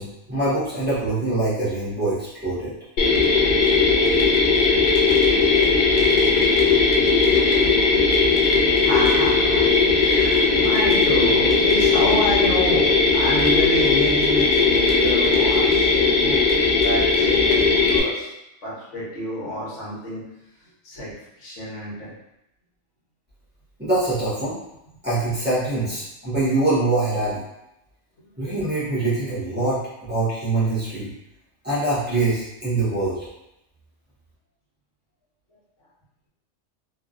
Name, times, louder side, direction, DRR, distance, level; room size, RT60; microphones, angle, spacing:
voice 1, 0.0-2.7 23.8-24.6 25.0-27.4 28.4-31.1 31.6-33.3, right 2 dB, 10° right, -11 dB, 0.8 m, -24 dB
Mechanisms, 3.0-18.0, left 4 dB, 60° left, 0.5 m, -18 dB
voice 2, 8.8-16.4 16.8-18.3 18.6-20.2 20.8-21.1 21.4-22.1, left 1 dB, 75° left, -7 dB, 1.2 m, -28 dB
2.7 x 2.3 x 2.4 m, 0.86 s
omnidirectional pair, 1.3 m